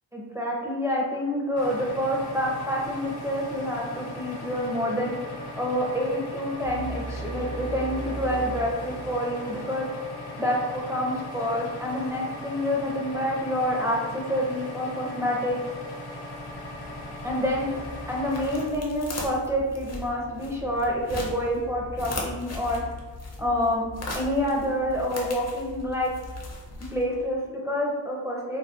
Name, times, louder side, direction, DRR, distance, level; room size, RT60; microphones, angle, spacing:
voice 1, 0.1-9.9 10.4-15.6 17.2-17.7 18.1-22.8 23.4-23.8 24.1-26.1 26.9-28.6, equal, 5° right, -4 dB, 0.5 m, -27 dB
sound 1, 1.6-18.7, left 1 dB, 65° left, 0.9 m, -39 dB
sound 2, 6.6-9.7, right 2 dB, 80° right, 0.6 m, -36 dB
sound 3, 16.3-27.3, left 2 dB, 40° left, 0.6 m, -39 dB
4.0 x 2.1 x 2.4 m, 1.4 s
wide cardioid pair, 130°, 43 cm